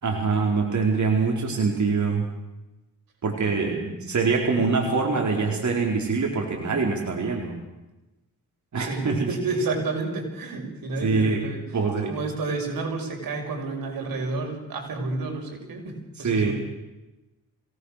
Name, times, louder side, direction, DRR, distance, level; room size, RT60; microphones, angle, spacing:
voice 1, 0.0-2.2 3.2-7.6 8.7-9.3 11.0-11.4 11.7-12.1 16.2-16.5, right 4 dB, 55° right, 1 dB, 4.5 m, -24 dB
voice 2, 8.8-11.6 12.1-16.5, right 3 dB, 80° right, 2 dB, 6.1 m, -30 dB
26.5 x 18.5 x 6.7 m, 1.0 s
cardioid pair, 65°, 35 cm